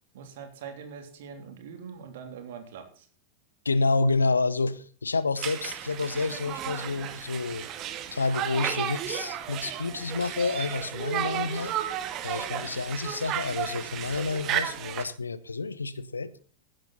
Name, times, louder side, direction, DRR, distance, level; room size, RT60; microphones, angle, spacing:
voice 1, 0.1-3.1, right 6 dB, 55° right, 3.2 m, -43 dB
voice 2, 3.6-7.7 8.1-11.7 12.2-16.3, left 3 dB, 75° left, 0.8 m, -29 dB
Conversation, 5.4-15.0, right 10 dB, 35° right, 1.8 m, -33 dB
15.5 x 12.0 x 4.1 m
figure-of-eight pair, 90°, 0 cm